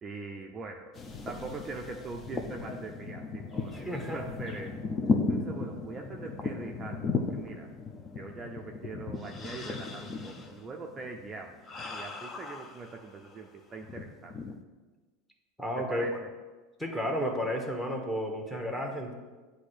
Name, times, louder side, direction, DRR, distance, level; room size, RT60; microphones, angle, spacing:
voice 1, 0.0-4.7 5.3-7.7 8.1-14.3 15.8-16.3, right 3 dB, 20° right, 1 dB, 0.5 m, -42 dB
sound 1, 0.9-13.4 13.8-14.6, left 4 dB, 25° left, 0.6 m, -36 dB
voice 2, 3.7-4.2 15.6-16.1 16.8-19.1, equal, 5° left, 1 dB, 1.1 m, -32 dB
8.2 x 2.7 x 6.2 m, 1.3 s
supercardioid pair, 140°, 0 cm